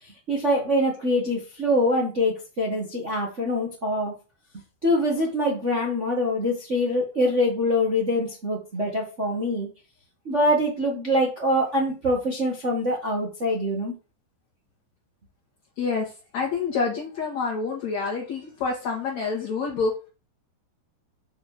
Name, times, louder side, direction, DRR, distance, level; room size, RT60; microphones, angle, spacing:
voice 1, 0.3-4.1 4.8-9.7 10.2-13.9, left 1 dB, 55° right, -1 dB, 0.7 m, -24 dB
voice 2, 15.8-16.1 16.3-19.9, left 4 dB, 55° left, -2 dB, 2.6 m, -27 dB
6.7 x 5.2 x 6.5 m, 0.32 s
omnidirectional pair, 4.5 m